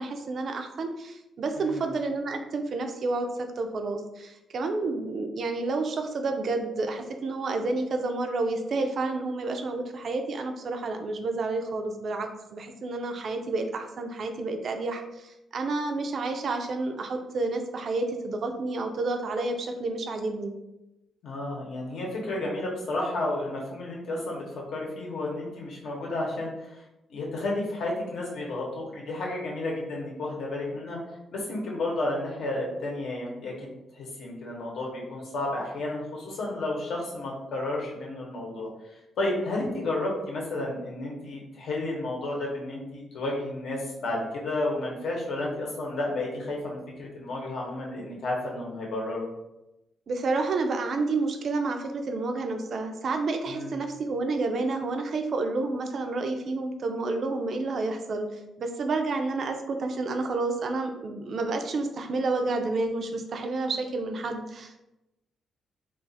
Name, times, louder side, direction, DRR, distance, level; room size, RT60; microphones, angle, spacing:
voice 1, 0.0-20.5 50.1-64.8, right 3 dB, 45° right, 5 dB, 0.4 m, -30 dB
voice 2, 1.6-1.9 21.2-26.8 27.1-38.7 39.2-49.3 53.5-53.8, left 2 dB, 65° left, -2 dB, 0.9 m, -32 dB
2.4 x 2.4 x 3.9 m, 0.93 s
cardioid pair, 165°, 0 cm